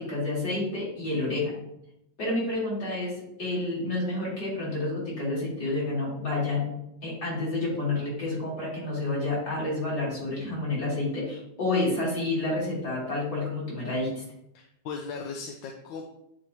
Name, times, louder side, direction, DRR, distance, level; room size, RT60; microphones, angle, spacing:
voice 1, 0.0-1.5 2.2-3.1 3.4-6.7 7.0-14.2, left 2 dB, 55° left, -6 dB, 3.3 m, -29 dB
voice 2, 14.5-16.0, left 5 dB, 75° left, 2 dB, 1.4 m, -37 dB
9.4 x 4.5 x 2.9 m, 0.82 s
omnidirectional pair, 2.1 m